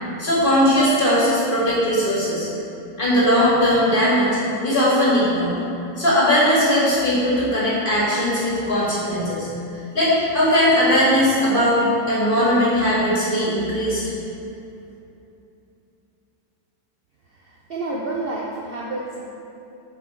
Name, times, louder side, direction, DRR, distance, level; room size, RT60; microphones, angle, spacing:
voice 1, 0.2-2.5 3.0-5.6 6.0-9.5 9.7-11.8 12.1-14.0, equal, 30° left, -8 dB, 1.9 m, -19 dB
voice 2, 17.3-19.2, right 2 dB, 70° right, -4 dB, 0.5 m, -29 dB
7.4 x 4.8 x 4.4 m, 2.8 s
omnidirectional pair, 1.9 m